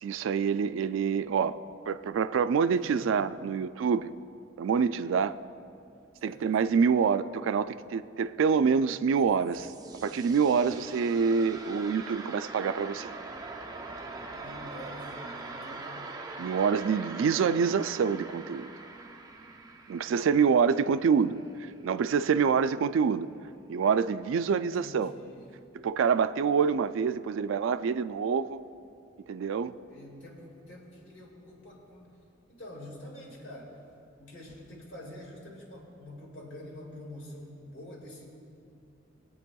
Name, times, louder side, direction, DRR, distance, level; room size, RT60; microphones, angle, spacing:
voice 1, 0.0-1.6 1.9-4.1 4.6-5.4 6.2-9.7 10.0-13.1 16.4-18.7 19.9-21.4 21.8-23.3 23.7-25.1 25.7-28.6 29.3-29.7, right 6 dB, 75° right, 0.3 m, -26 dB
voice 2, 2.7-3.1 6.2-6.4 14.3-16.0 20.2-21.3 24.8-25.5 29.9-32.1 32.5-33.8 34.2-38.3, left 1 dB, 65° left, 2.0 m, -47 dB
sound 1, 9.2-21.8, right 3 dB, 20° right, 0.5 m, -43 dB
22.5 x 8.5 x 2.3 m
head